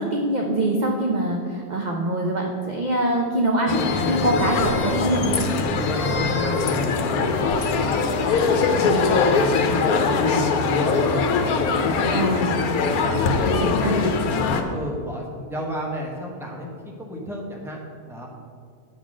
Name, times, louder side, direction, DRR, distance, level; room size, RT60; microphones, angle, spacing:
voice 1, 0.0-5.5 12.1-12.6 13.5-14.1, right 1 dB, 45° right, 0 dB, 0.6 m, -24 dB
sound 1, 3.7-14.6, left 4 dB, 80° left, 1.2 m, -22 dB
voice 2, 5.9-6.8 7.1-12.4 12.9-13.8 14.3-16.7 17.0-18.3, equal, ahead, -1 dB, 0.9 m, -34 dB
8.0 x 4.0 x 6.1 m, 2.1 s
omnidirectional pair, 1.5 m